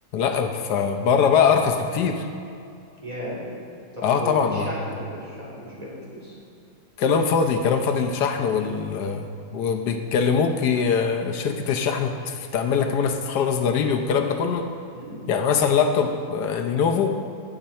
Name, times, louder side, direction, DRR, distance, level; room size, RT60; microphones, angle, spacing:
voice 1, 0.1-2.3 4.0-4.7 7.0-9.3 9.5-14.7 15.3-17.1, left 6 dB, 85° left, 5 dB, 1.4 m, -22 dB
voice 2, 3.0-3.4 3.9-6.3 11.1-11.3 14.9-15.2, equal, 25° right, -8 dB, 3.2 m, -35 dB
17.0 x 6.5 x 4.2 m, 2.5 s
omnidirectional pair, 1.7 m